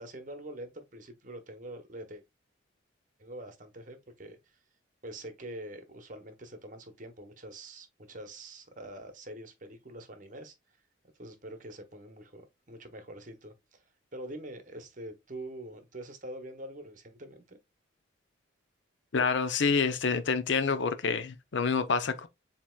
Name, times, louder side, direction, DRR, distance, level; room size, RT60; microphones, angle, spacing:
voice 1, 0.0-2.2 3.2-4.6 5.0-10.5 11.2-12.4 12.7-13.8 14.1-17.6, right 1 dB, 40° right, 0.9 m, -45 dB
voice 2, 19.1-22.3, left 5 dB, 65° left, 0.5 m, -27 dB
7.4 x 2.9 x 2.2 m
head